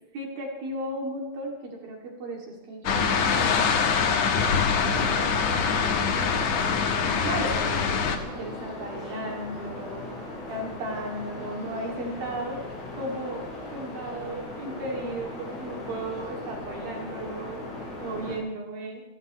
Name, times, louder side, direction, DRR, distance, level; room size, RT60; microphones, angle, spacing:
voice 1, 0.1-4.6 4.9-12.6 12.9-13.5 13.7-19.0, right 1 dB, 65° right, -1 dB, 4.4 m, -36 dB
sound 1, 2.8-8.2, left 6 dB, 60° left, 2.0 m, -24 dB
sound 2, 4.2-18.4, left 2 dB, 30° left, 8.2 m, -38 dB
28.0 x 15.5 x 3.2 m, 0.98 s
omnidirectional pair, 4.6 m